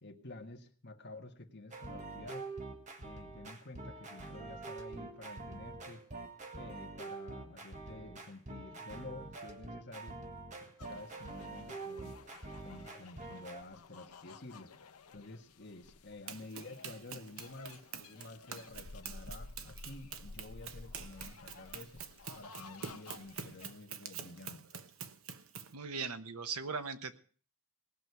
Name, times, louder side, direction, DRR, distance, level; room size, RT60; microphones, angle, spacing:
voice 1, 0.0-2.5 3.0-6.0 6.5-10.2 10.6-12.2 12.6-14.7 15.1-22.0 22.3-24.6, left 2 dB, 50° left, 4 dB, 1.7 m, -50 dB
sound 1, 1.7-13.6, right 3 dB, 30° right, 1.7 m, -46 dB
sound 2, 10.8-23.7, left 3 dB, 85° left, 0.8 m, -53 dB
Run, 16.3-25.8, right 7 dB, 65° right, 1.0 m, -47 dB
voice 2, 25.7-27.2, right 5 dB, 85° right, 9 dB, 1.2 m, -39 dB
19.0 x 6.4 x 8.2 m, 0.43 s
head